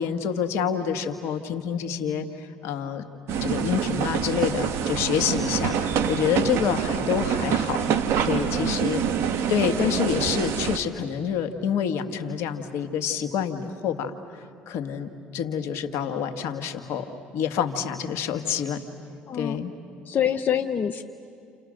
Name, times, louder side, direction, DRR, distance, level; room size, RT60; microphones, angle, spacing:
voice 1, 0.0-2.3 2.6-3.0 3.4-7.8 8.2-9.0 9.5-14.2 14.7-18.8 19.3-19.7, left 7 dB, 70° left, 6 dB, 2.0 m, -27 dB
sound 1, 3.3-10.8, right 7 dB, 70° right, 1.4 m, -26 dB
voice 2, 20.1-21.0, left 9 dB, 45° left, 5 dB, 1.0 m, -25 dB
30.0 x 29.0 x 6.6 m, 2.4 s
supercardioid pair, 75°, 4 cm